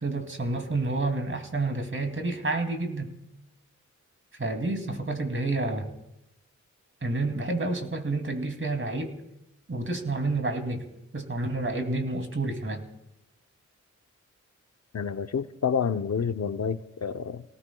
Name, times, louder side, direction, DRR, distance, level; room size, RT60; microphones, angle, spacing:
voice 1, 0.0-3.1 4.4-5.9 7.0-9.2 9.7-10.9 11.1-12.8, right 2 dB, 40° right, 2.7 m, -29 dB
voice 2, 14.9-17.4, left 6 dB, 60° left, 0.7 m, -29 dB
28.0 x 18.5 x 2.3 m
cardioid pair, 50°, 30 cm